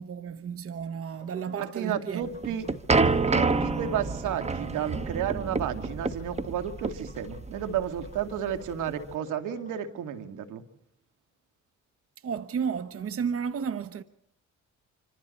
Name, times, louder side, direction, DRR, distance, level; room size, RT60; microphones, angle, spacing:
voice 1, 0.0-2.8 12.2-14.0, right 7 dB, 50° right, 1.1 m, -33 dB
sound 1, 1.1-9.9, left 4 dB, 25° left, 6.9 m, -52 dB
voice 2, 1.6-2.7 3.3-10.6, right 9 dB, 85° right, 2.4 m, -32 dB
sound 2, 2.2-9.1, right 3 dB, 20° right, 1.2 m, -28 dB
27.0 x 26.0 x 4.3 m
cardioid pair, 90°, 30 cm